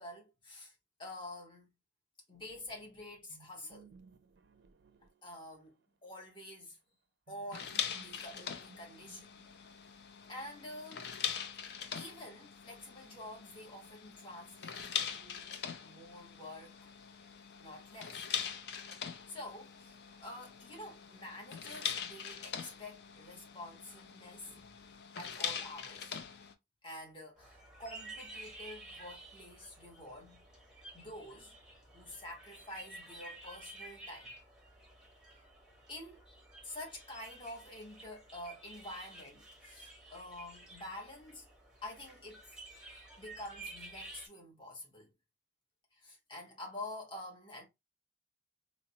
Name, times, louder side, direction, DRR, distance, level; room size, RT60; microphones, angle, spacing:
voice 1, 0.0-1.7 2.3-3.9 5.2-5.7 6.0-6.8 7.3-9.3 10.3-11.1 11.6-15.5 15.8-16.9 17.6-18.2 19.1-20.0 20.2-24.7 25.2-26.2 26.8-30.4 30.9-31.6 31.9-34.3 35.3-35.4 35.9-36.2 36.6-41.5 41.8-42.5 43.2-45.1 45.9-47.7, left 1 dB, 25° left, 1.0 m, -48 dB
sound 1, 3.3-5.9 7.3-9.7, right 5 dB, 65° right, 0.4 m, -61 dB
sound 2, 7.5-26.5, left 7 dB, 60° left, 0.4 m, -42 dB
sound 3, 27.4-44.3, right 2 dB, 5° right, 0.8 m, -52 dB
4.0 x 2.1 x 2.7 m
head